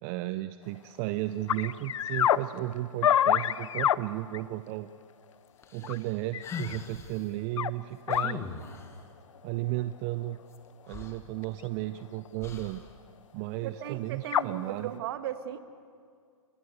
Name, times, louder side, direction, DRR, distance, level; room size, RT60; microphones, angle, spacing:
voice 1, 0.0-4.9 5.7-8.4 9.4-10.4 10.9-12.8 13.3-14.9, right 16 dB, 25° right, 12 dB, 0.5 m, -34 dB
sound 1, 0.8-0.9 1.5-2.4 3.0-4.0 4.3-4.4 5.8-6.0 6.3-6.8 7.6-7.7 8.1-8.4 9.8-9.9 11.4-11.6 12.2-12.3 13.9-14.0 14.3-14.4, left 10 dB, 65° left, 0.6 m, -26 dB
sound 2, 5.6-7.2 8.1-9.0 10.5-10.6 10.9-11.9 12.4-12.9, left 5 dB, 15° left, 1.4 m, -41 dB
voice 2, 13.6-15.6, right 11 dB, 45° right, 11 dB, 1.3 m, -36 dB
29.0 x 14.5 x 8.1 m, 2.2 s
hypercardioid pair, 140°, 17 cm